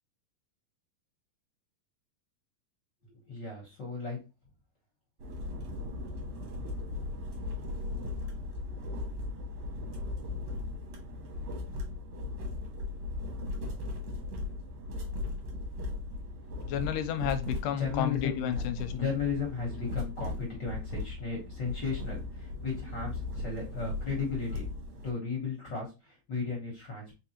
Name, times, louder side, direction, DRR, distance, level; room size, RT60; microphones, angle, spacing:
voice 1, 3.1-4.2 17.8-18.6 18.9-24.6 25.0-27.1, left 5 dB, 50° left, -1 dB, 1.3 m, -35 dB
sound 1, 5.2-25.1, left 3 dB, 60° right, 2.0 m, -37 dB
voice 2, 16.7-18.9, left 9 dB, 85° left, 9 dB, 2.2 m, -31 dB
4.7 x 3.5 x 2.9 m, 0.28 s
omnidirectional pair, 3.8 m